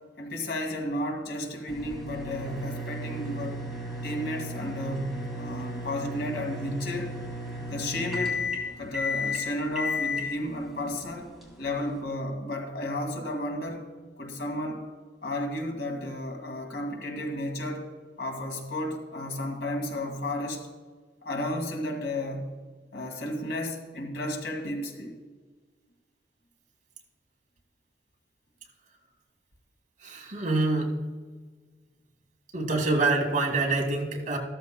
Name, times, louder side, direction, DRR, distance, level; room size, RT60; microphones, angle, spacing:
voice 1, 0.2-3.6 4.0-7.1 7.7-8.5 8.8-11.3 11.6-13.8 14.2-14.9 15.2-17.9 18.2-20.7 21.2-22.5 22.9-25.2, left 1 dB, 65° left, 3 dB, 1.9 m, -33 dB
sound 1, 1.7-12.0, left 2 dB, ahead, 2.5 m, -34 dB
voice 2, 30.0-30.9 32.5-34.4, right 3 dB, 50° right, 1 dB, 1.8 m, -26 dB
14.0 x 13.5 x 2.2 m, 1.4 s
head